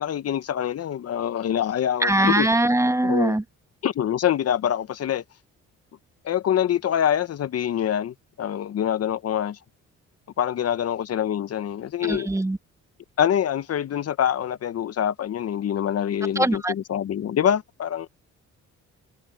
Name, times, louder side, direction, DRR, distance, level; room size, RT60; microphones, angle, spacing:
voice 1, 0.0-2.5 3.0-3.4 3.8-5.2 6.2-9.6 10.4-12.3 13.2-18.1, left 10 dB, 55° left, 0.8 m, -25 dB
voice 2, 2.0-3.4 12.1-12.6 16.4-16.7, right 1 dB, 10° right, 1.1 m, -21 dB
cardioid pair, 90°, 30 cm